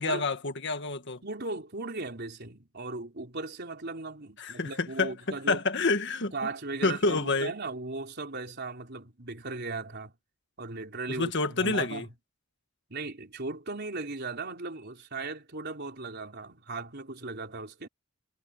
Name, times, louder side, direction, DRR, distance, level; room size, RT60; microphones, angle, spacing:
voice 1, 0.0-1.2 4.4-5.1 5.5-6.3 6.8-7.5 11.1-12.0, left 3 dB, 60° left, 1.8 m, -28 dB
voice 2, 1.2-5.6 6.3-10.1 10.6-12.1 12.9-17.9, right 3 dB, 55° right, 4.2 m, -37 dB
head